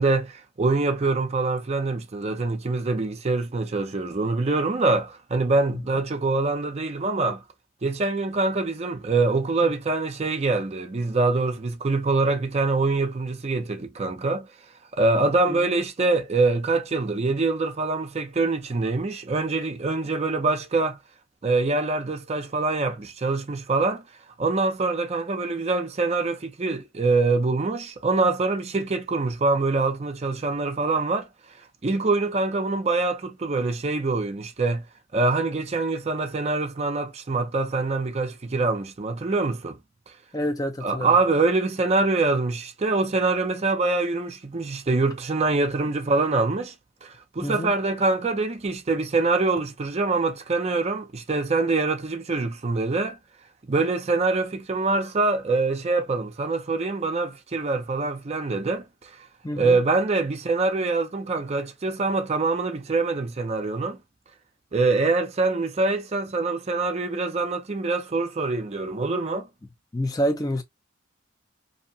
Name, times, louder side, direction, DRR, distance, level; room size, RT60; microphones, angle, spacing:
voice 1, 0.0-7.4 7.8-14.5 14.9-21.0 21.4-24.0 24.4-31.3 31.8-34.8 35.1-39.8 40.8-46.7 47.0-53.2 53.7-59.1 59.6-64.0 64.7-69.5, right 3 dB, 35° right, 0.5 m, -24 dB
voice 2, 40.3-41.1 47.4-47.7 59.4-59.8 69.9-70.6, equal, 20° left, 0.5 m, -27 dB
2.7 x 2.1 x 2.6 m
head